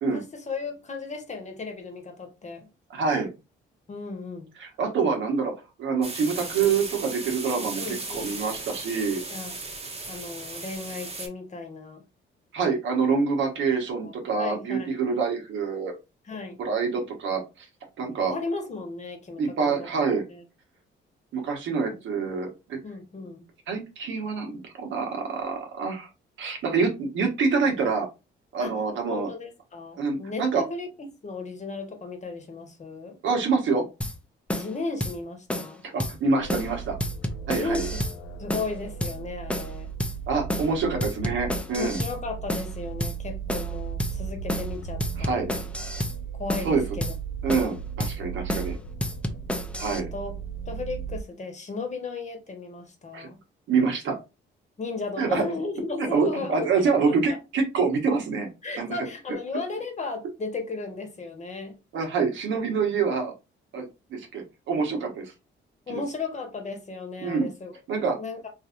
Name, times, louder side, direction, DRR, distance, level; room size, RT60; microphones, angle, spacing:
voice 1, 0.1-2.7 3.9-4.5 7.5-8.3 9.3-9.6 10.1-12.0 14.0-15.0 16.2-16.6 18.3-19.9 20.3-20.4 22.8-23.5 28.6-28.7 29.0-30.9 31.2-33.2 34.5-35.8 37.5-38.0 38.4-39.9 41.7-45.4 46.4-47.1 49.9-50.3 50.7-53.4 54.8-57.4 58.6-61.8 65.9-67.7 68.2-68.5, left 3 dB, 35° left, 1.1 m, -35 dB
voice 2, 2.9-3.3 4.6-5.5 5.8-9.2 12.5-15.9 16.6-17.4 18.0-18.3 19.4-20.3 21.3-22.8 23.7-26.1 26.4-28.1 28.5-29.3 30.0-30.6 33.2-33.8 35.9-37.0 37.5-37.9 40.3-42.0 45.2-45.5 46.6-46.8 47.4-48.8 49.8-50.1 53.1-53.3 53.7-54.2 55.2-55.5 56.0-58.5 58.8-59.0 61.9-63.3 63.7-65.3 65.9-66.0 67.2-67.5 67.9-68.2, right 5 dB, 75° right, 1.2 m, -26 dB
sound 1, 6.0-11.3, right 3 dB, 30° right, 1.0 m, -36 dB
sound 2, 34.0-34.2 34.5-34.7 35.0-35.2 35.5-35.7 36.0-36.2 36.5-36.7 37.0-38.2 38.5-38.7 39.0-39.2 39.5-39.7 40.0-40.2 40.5-40.7 41.0-42.2 42.5-42.7 43.0-43.2 43.5-43.7 44.0-44.2 44.5-44.7 45.0-46.2 46.5-46.7 47.0-47.2 47.5-47.7 48.0-48.2 48.5-48.7 49.0-50.0, left 1 dB, 5° left, 0.5 m, -30 dB
sound 3, 36.4-51.2, right 7 dB, 75° left, 0.7 m, -36 dB
3.2 x 2.7 x 2.4 m
cardioid pair, 90°, 20 cm